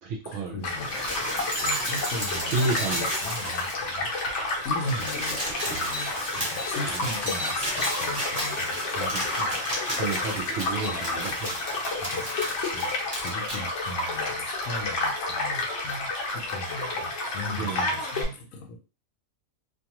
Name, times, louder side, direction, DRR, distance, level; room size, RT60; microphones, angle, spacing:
voice 1, 0.0-0.6 1.8-1.9 2.5-3.1 6.6-7.0 8.9-11.6 17.6-17.9, right 3 dB, 65° right, 2 dB, 0.8 m, -32 dB
voice 2, 0.5-1.2 1.6-4.1 4.6-8.8 10.8-11.3 12.0-12.3 12.6-18.8, left 1 dB, 80° left, 2 dB, 1.1 m, -38 dB
Child speech kid speaking / Stream / Car passing by, 0.6-18.2, left 2 dB, 60° left, 0.9 m, -30 dB
sound 1, 0.7-4.0 4.3-4.4 4.6-13.6 14.6-14.7, equal, 15° right, 0.9 m, -33 dB
2.5 x 2.3 x 2.9 m, 0.33 s
omnidirectional pair, 1.5 m